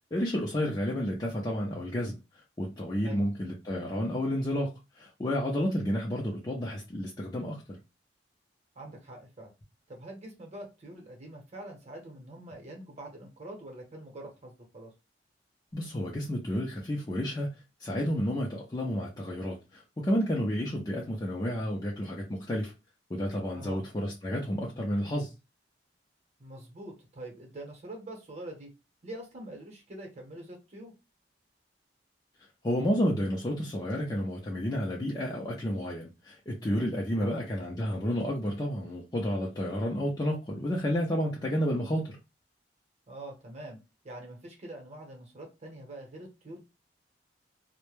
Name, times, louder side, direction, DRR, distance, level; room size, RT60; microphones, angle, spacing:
voice 1, 0.1-2.2 2.6-7.6 15.7-17.5 17.8-22.7 23.1-25.3 32.6-42.2, equal, 20° left, 0.4 m, -31 dB
voice 2, 8.7-9.5 9.9-14.9 23.5-23.8 26.4-28.7 29.0-30.9 37.2-37.4 43.1-43.8 44.0-46.6, right 1 dB, 40° right, 0.9 m, -44 dB
2.1 x 2.1 x 3.0 m
head